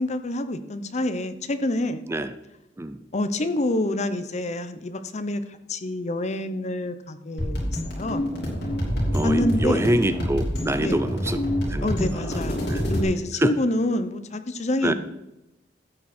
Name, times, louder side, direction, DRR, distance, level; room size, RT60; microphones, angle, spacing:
voice 1, 0.0-2.0 3.1-8.2 9.2-9.9 10.8-11.0 11.8-14.9, left 1 dB, 40° left, 11 dB, 0.8 m, -27 dB
sound 1, 7.4-13.0, equal, 60° left, 4.6 m, -27 dB
voice 2, 9.1-11.4 11.7-11.9 12.3-12.4 12.7-12.8 13.4-13.5 14.8-14.9, right 1 dB, 15° right, 11 dB, 0.4 m, -25 dB
13.5 x 8.5 x 4.3 m, 0.93 s
head